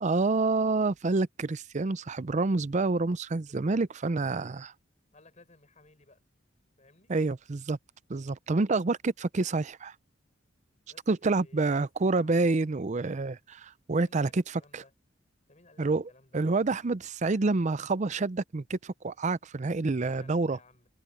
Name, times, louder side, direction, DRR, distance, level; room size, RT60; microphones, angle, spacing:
voice 1, 0.0-4.7 7.1-7.8 8.1-9.9 11.1-14.4 14.7-14.8 15.8-20.6, right 3 dB, 40° right, 0.5 m, -28 dB
voice 2, 3.5-3.8 5.1-6.2 6.8-7.1 10.9-11.1 11.4-12.5 14.0-14.9 15.5-17.0 20.0-20.9, left 2 dB, 40° left, 5.5 m, -58 dB
head